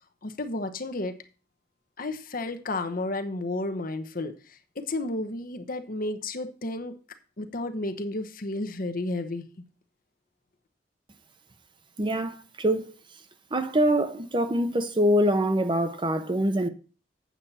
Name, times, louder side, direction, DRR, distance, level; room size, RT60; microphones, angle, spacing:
voice 1, 0.2-1.1 2.0-7.0 7.4-9.5, left 2 dB, 50° left, 1.0 m, -32 dB
voice 2, 12.0-12.9 13.5-16.7, equal, 25° right, 0.9 m, -24 dB
8.5 x 7.2 x 4.2 m
head